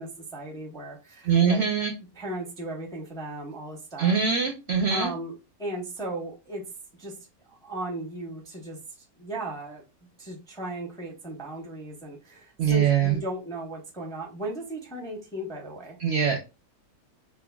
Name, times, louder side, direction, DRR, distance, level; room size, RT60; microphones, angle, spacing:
voice 1, 0.0-1.6 2.2-4.1 4.9-5.3 5.6-6.7 7.0-7.1 7.5-8.8 9.2-9.8 10.2-16.0, right 1 dB, 5° left, 0 dB, 0.5 m, -36 dB
voice 2, 1.2-1.9 4.0-5.1 12.6-13.2 16.0-16.4, right 7 dB, 65° right, 3 dB, 0.7 m, -23 dB
5.6 x 2.1 x 2.2 m, 0.28 s
omnidirectional pair, 1.6 m